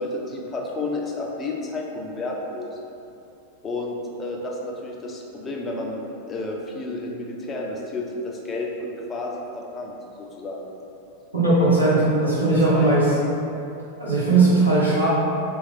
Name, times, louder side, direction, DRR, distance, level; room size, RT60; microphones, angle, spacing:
voice 1, 0.0-2.8 3.6-10.7 12.7-13.1, left 2 dB, 20° left, -1 dB, 0.6 m, -31 dB
voice 2, 11.3-13.0 14.0-15.1, right 2 dB, 80° right, -9 dB, 1.0 m, -18 dB
4.2 x 2.4 x 4.1 m, 2.8 s
figure-of-eight pair, 90°, 0 cm